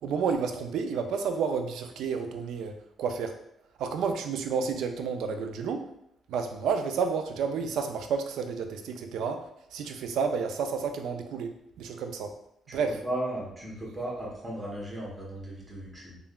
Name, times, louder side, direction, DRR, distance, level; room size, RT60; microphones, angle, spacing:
voice 1, 0.0-3.4 3.8-5.9 6.3-12.3 12.7-13.0, right 5 dB, 80° right, 6 dB, 0.3 m, -31 dB
voice 2, 12.7-16.2, right 1 dB, 20° right, -5 dB, 1.0 m, -36 dB
3.4 x 2.2 x 2.3 m, 0.77 s
cardioid pair, 90°, 0 cm